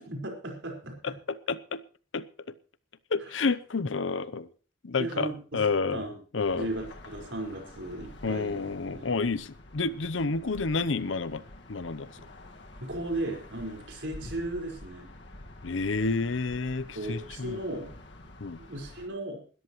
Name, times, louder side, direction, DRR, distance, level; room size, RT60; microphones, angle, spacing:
voice 1, 0.0-0.9 3.2-3.3 5.0-5.6 5.9-6.2 6.5-9.2 12.2-12.3 12.8-15.1 16.9-17.9 18.7-19.4, right 1 dB, 80° right, 2 dB, 4.9 m, -36 dB
voice 2, 1.0-1.8 2.1-2.2 3.1-4.5 4.8-6.0 6.3-6.7 8.2-11.4 11.7-12.1 15.6-17.6 18.4-18.6, left 4 dB, 90° left, 16 dB, 0.8 m, -30 dB
sound 1, 6.4-19.1, left 1 dB, 65° left, 1.9 m, -48 dB
20.5 x 13.5 x 3.1 m, 0.38 s
head